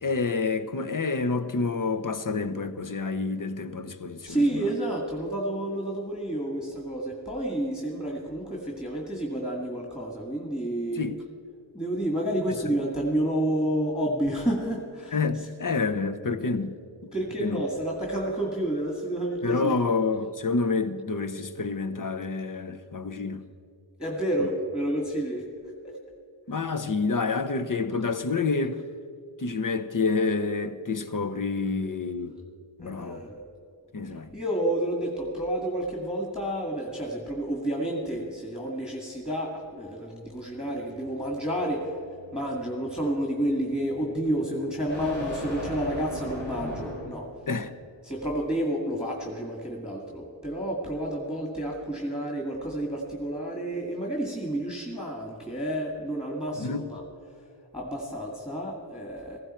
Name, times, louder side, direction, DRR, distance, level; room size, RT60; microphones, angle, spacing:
voice 1, 0.0-4.7 11.0-11.2 15.1-16.8 17.4-17.6 19.4-23.4 26.5-28.8 29.4-32.3 32.8-33.2 33.9-34.3 47.5-47.7 56.5-56.9, left 4 dB, 45° left, 0.9 m, -28 dB
voice 2, 4.2-11.0 11.7-15.2 17.1-19.7 24.0-25.5 25.8-25.9 32.8-33.4 34.3-41.9 42.3-47.3 48.0-57.0 57.7-59.4, right 1 dB, 10° left, 2.1 m, -30 dB
sound 1, 40.3-47.3, left 1 dB, 80° left, 3.9 m, -39 dB
15.5 x 15.0 x 4.5 m
cardioid pair, 45°, 45 cm